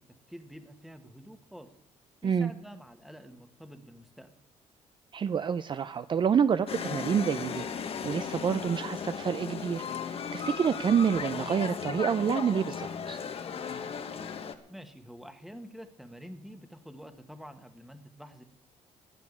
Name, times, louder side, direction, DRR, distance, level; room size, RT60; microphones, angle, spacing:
voice 1, 0.3-1.7 2.2-4.3 14.7-18.4, equal, ahead, 8 dB, 1.4 m, -47 dB
voice 2, 5.1-7.7 8.0-13.2, right 7 dB, 40° right, 13 dB, 0.5 m, -28 dB
sound 1, 6.7-14.5, left 6 dB, 50° left, 1.2 m, -36 dB
12.0 x 8.4 x 9.6 m, 0.85 s
cardioid pair, 115°, 13 cm